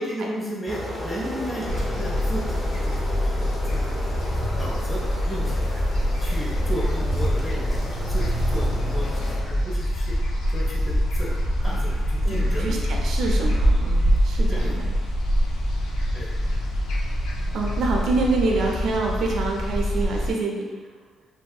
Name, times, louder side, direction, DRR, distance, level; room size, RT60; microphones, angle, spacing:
voice 1, 0.0-4.2 4.5-5.9 6.2-10.2 10.5-12.8 14.5-14.8 16.1-16.3 18.6-18.7, right 1 dB, 35° left, -4 dB, 0.9 m, -34 dB
sound 1, 0.7-9.4, equal, 15° left, 0.5 m, -31 dB
sound 2, 1.7-20.3, equal, 85° left, 0.4 m, -24 dB
voice 2, 12.2-14.9 17.5-20.6, right 3 dB, 70° right, -1 dB, 0.4 m, -26 dB
2.6 x 2.1 x 2.3 m, 1.4 s
cardioid pair, 90°, 0 cm